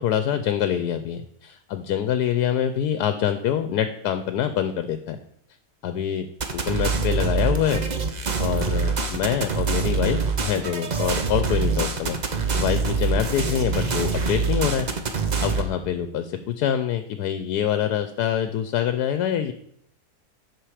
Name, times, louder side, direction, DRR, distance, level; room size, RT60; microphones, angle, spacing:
voice 1, 0.0-5.2 5.8-6.3 6.5-7.8 8.4-12.2 12.5-14.9 15.4-19.5, left 9 dB, 80° left, 9 dB, 1.2 m, -25 dB
sound 1, 6.4-15.6, right 4 dB, 40° right, 0.7 m, -25 dB
8.9 x 5.5 x 4.9 m, 0.69 s
omnidirectional pair, 1.7 m